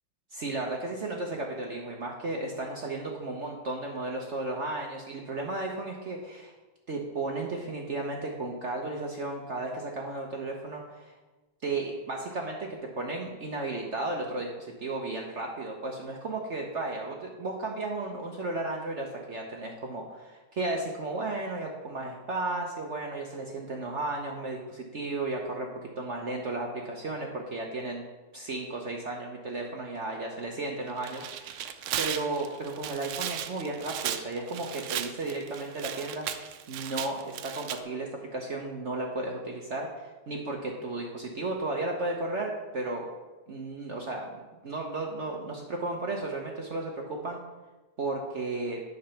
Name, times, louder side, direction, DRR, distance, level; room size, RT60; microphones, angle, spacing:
voice 1, 0.3-6.5 6.9-11.1 11.6-28.0 28.3-31.6 32.0-36.3 36.7-43.0 43.5-47.4 48.0-48.8, right 2 dB, 60° right, 0 dB, 0.7 m, -34 dB
Tearing, 30.9-37.8, right 10 dB, 85° right, 1.4 m, -36 dB
10.0 x 4.0 x 5.7 m, 1.2 s
omnidirectional pair, 2.3 m